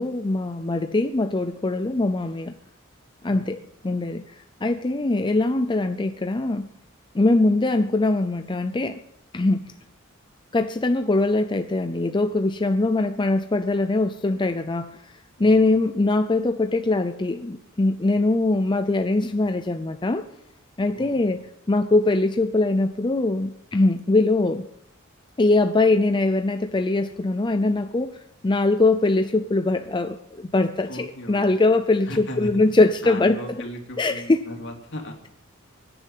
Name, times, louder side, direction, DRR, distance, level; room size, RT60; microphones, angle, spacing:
voice 1, 0.0-2.6 3.2-4.3 4.6-6.7 7.1-9.0 9.3-9.7 10.5-15.0 15.4-20.3 20.8-21.4 21.7-24.6 25.4-28.2 28.4-32.1 32.4-33.4 34.0-34.4, left 2 dB, 25° left, 8 dB, 0.5 m, -22 dB
voice 2, 15.4-15.7 20.9-21.4 30.9-31.4 32.0-35.3, left 1 dB, 60° left, 2 dB, 3.0 m, -37 dB
23.5 x 10.0 x 5.6 m, 0.81 s
head